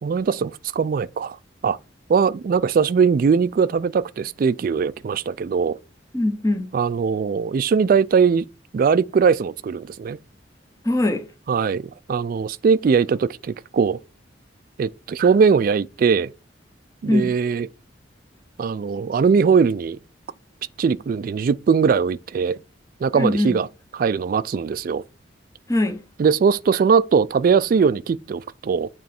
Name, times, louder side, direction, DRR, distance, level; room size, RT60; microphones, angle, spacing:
voice 1, 0.0-1.4 1.6-1.8 2.1-5.8 6.7-8.4 8.7-10.2 11.5-14.0 14.8-16.3 17.0-17.7 18.6-20.0 20.8-22.6 23.0-23.7 24.0-25.0 26.2-28.9, right 6 dB, 50° right, 0.3 m, -20 dB
voice 2, 6.1-6.7 10.8-11.3 17.1-17.4 23.1-23.6 25.7-26.1, left 1 dB, 20° left, 0.9 m, -22 dB
9.1 x 3.1 x 4.3 m
head